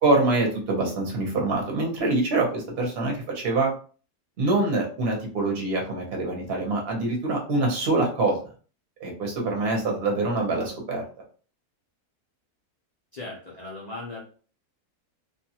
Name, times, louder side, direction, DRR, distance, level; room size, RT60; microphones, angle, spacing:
voice 1, 0.0-3.7 4.4-8.4 9.0-11.0, right 2 dB, 45° right, 0 dB, 0.9 m, -25 dB
voice 2, 13.1-14.2, left 2 dB, 70° left, -5 dB, 0.4 m, -37 dB
2.6 x 2.3 x 2.8 m, 0.41 s
omnidirectional pair, 1.7 m